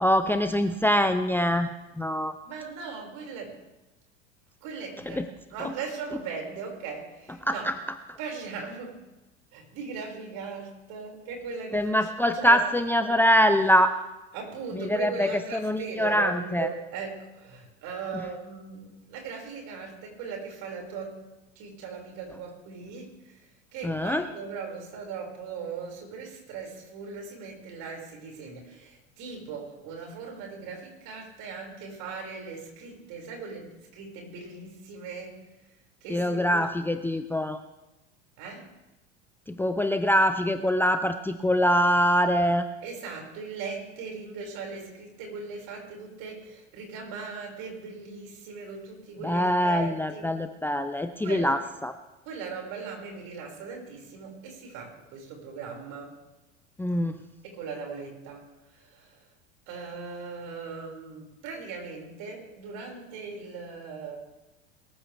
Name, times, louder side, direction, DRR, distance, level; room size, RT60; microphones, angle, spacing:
voice 1, 0.0-2.4 5.1-5.3 5.6-5.7 7.4-7.8 8.1-8.2 11.7-14.0 14.7-16.7 18.1-18.2 23.8-24.3 36.1-37.6 39.5-42.7 49.2-52.0 56.8-57.3, equal, 5° left, 9 dB, 0.8 m, -24 dB
voice 2, 2.4-3.6 4.6-5.2 5.5-7.6 8.2-9.0 9.5-12.6 14.3-21.2 21.5-35.5 36.0-36.6 38.4-38.7 42.8-50.3 51.2-51.5 52.2-56.2 57.4-59.3 59.7-64.2, right 5 dB, 55° right, 1 dB, 6.1 m, -39 dB
22.5 x 14.5 x 3.6 m, 1.0 s
hypercardioid pair, 85°, 37 cm